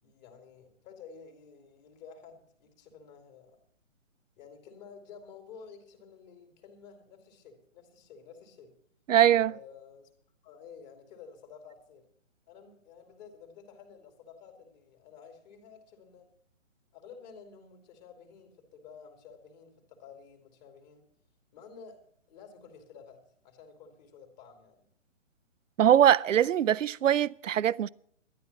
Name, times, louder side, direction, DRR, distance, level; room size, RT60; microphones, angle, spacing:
voice 1, 0.0-3.6 4.4-8.7 9.5-10.1 10.4-12.0 12.5-16.3 16.9-21.1 21.5-22.0 22.3-24.9, left 6 dB, 35° left, 2.8 m, -52 dB
voice 2, 9.1-9.5 25.8-27.9, right 10 dB, 75° right, 0.6 m, -22 dB
12.5 x 10.5 x 7.1 m
figure-of-eight pair, 140°, 38 cm